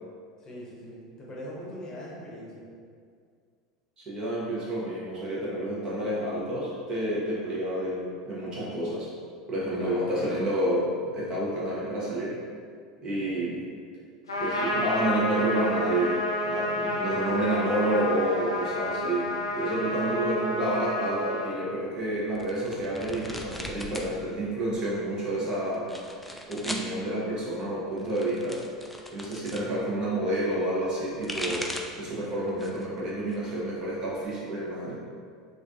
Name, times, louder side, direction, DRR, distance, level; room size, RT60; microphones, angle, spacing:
voice 1, 0.4-2.7 9.7-10.4 13.0-13.4 20.1-20.3, left 1 dB, 25° left, -6 dB, 1.0 m, -41 dB
voice 2, 4.0-9.1 9.5-10.8 11.1-12.4 13.0-13.6 14.4-16.2 16.4-25.9 26.5-28.6 29.1-31.7 32.0-34.9, right 1 dB, 30° right, -6 dB, 1.0 m, -29 dB
Trumpet, 14.3-21.5, left 1 dB, 75° left, 0.5 m, -30 dB
sound 1, 22.4-24.1 24.4-25.1 25.7-26.9 27.9-29.7 30.9-32.0 32.5-32.9 33.3-34.3, left 1 dB, 5° left, 0.3 m, -38 dB
4.6 x 2.5 x 2.5 m, 2.1 s
figure-of-eight pair, 75°, 2 cm